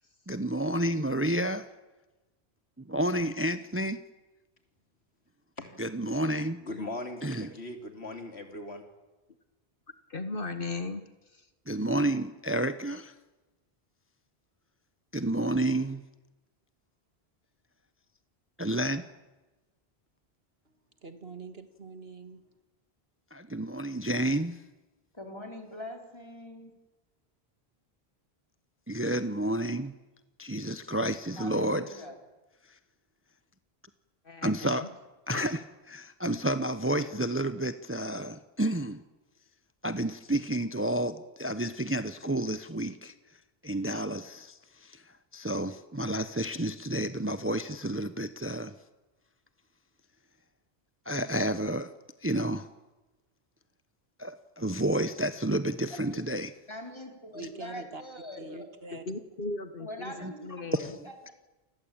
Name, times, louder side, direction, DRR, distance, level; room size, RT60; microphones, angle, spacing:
voice 1, 0.3-1.7 2.8-4.0 5.8-6.6 7.2-7.5 11.7-13.1 15.1-16.0 18.6-19.0 23.3-24.6 28.9-29.9 30.4-32.0 32.7-32.8 34.4-34.8 35.3-35.6 35.9-39.0 39.8-43.1 43.6-48.7 51.1-51.9 52.2-52.7 54.2-56.5 60.2-60.3 60.7-60.9, right 1 dB, 15° right, 11 dB, 0.8 m, -30 dB
voice 2, 6.6-8.8, left 2 dB, 85° left, 5 dB, 3.6 m, -39 dB
voice 3, 10.1-11.5 34.2-34.9 35.3-35.4 58.9-60.9, left 3 dB, 55° left, 10 dB, 1.6 m, -37 dB
voice 4, 21.0-22.4 57.3-58.0 58.4-59.0, right 3 dB, 70° right, 9 dB, 2.2 m, -44 dB
voice 5, 25.1-26.7 31.4-32.2 56.1-56.2 56.7-58.7 59.8-61.3, left 1 dB, 25° left, 3 dB, 4.5 m, -43 dB
29.0 x 20.0 x 8.9 m, 1.1 s
omnidirectional pair, 1.1 m